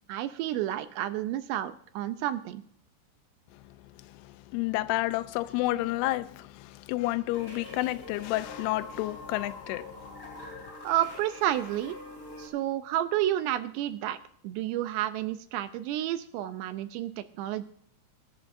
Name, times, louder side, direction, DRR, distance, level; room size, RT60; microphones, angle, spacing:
voice 1, 0.1-2.6 10.8-12.0 12.4-14.2 14.4-17.7, right 12 dB, 85° right, 2.5 m, -30 dB
voice 2, 4.1-10.1, left 18 dB, 85° left, 2.3 m, -30 dB
sound 1, 7.3-12.5, left 2 dB, 20° left, 6.1 m, -44 dB
25.5 x 11.0 x 2.6 m
omnidirectional pair, 5.4 m